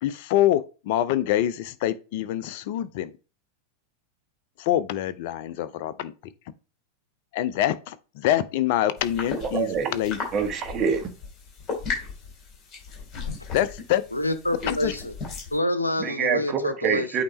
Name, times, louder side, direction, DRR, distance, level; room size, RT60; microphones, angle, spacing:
voice 1, 0.0-3.1 4.6-6.1 7.3-10.2 13.5-14.0 14.7-14.9, left 12 dB, 50° left, 0.6 m, -25 dB
sound 1, 9.0-15.6, left 4 dB, 30° left, 3.3 m, -36 dB
voice 2, 9.4-10.0 10.3-11.1 16.0-17.2, right 6 dB, 30° right, 1.4 m, -26 dB
voice 3, 14.1-15.1 15.5-17.1, left 1 dB, 85° left, 0.8 m, -27 dB
8.6 x 2.9 x 4.3 m
figure-of-eight pair, 90°, 0 cm